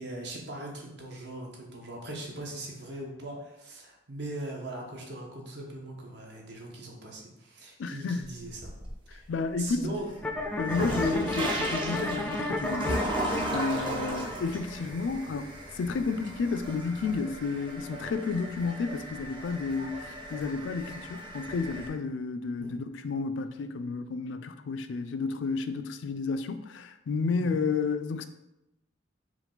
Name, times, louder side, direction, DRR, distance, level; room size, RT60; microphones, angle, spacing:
voice 1, 0.0-8.7 9.1-9.3 9.6-10.1 10.7-11.0 13.9-14.1 22.6-22.8 27.4-27.6, right 1 dB, 65° right, 0.9 m, -40 dB
voice 2, 7.8-8.3 9.1-9.9 10.6-28.3, left 4 dB, 85° left, 0.3 m, -31 dB
sound 1, 8.2-9.1 9.6-21.9, right 1 dB, 25° right, 0.7 m, -36 dB
sound 2, 10.2-17.2, left 2 dB, 5° left, 0.3 m, -34 dB
4.5 x 2.3 x 3.8 m
head